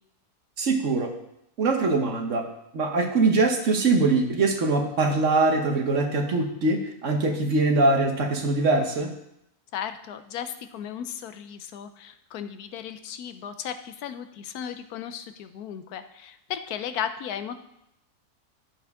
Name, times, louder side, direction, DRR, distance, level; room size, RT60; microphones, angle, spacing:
voice 1, 0.6-1.1 1.6-2.4 2.7-9.1, right 3 dB, 55° right, 4 dB, 1.3 m, -23 dB
voice 2, 9.7-17.6, left 9 dB, 85° left, 9 dB, 1.1 m, -35 dB
10.0 x 7.2 x 3.5 m, 0.79 s
omnidirectional pair, 1.6 m